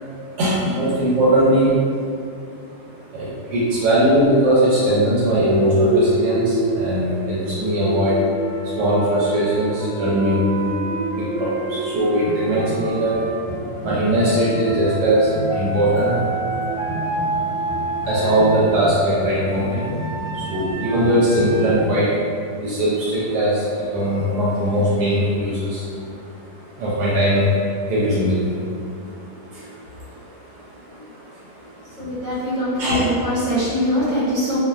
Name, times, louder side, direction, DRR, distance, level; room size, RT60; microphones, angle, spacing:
voice 1, 0.0-32.3 32.8-33.1, right 1 dB, 80° right, -8 dB, 1.1 m, -21 dB
sound 1, 5.3-19.5, right 1 dB, 35° right, 0.9 m, -28 dB
Wind instrument woodwind instrument, 8.3-13.4 14.1-18.7 19.5-21.7, right 2 dB, 70° left, 0.8 m, -30 dB
sound 2, 12.2-12.9 13.1-22.0, left 1 dB, 25° left, 0.9 m, -33 dB
voice 2, 32.0-34.6, equal, 55° right, -10 dB, 1.2 m, -22 dB
2.8 x 2.1 x 2.2 m, 2.3 s
omnidirectional pair, 1.8 m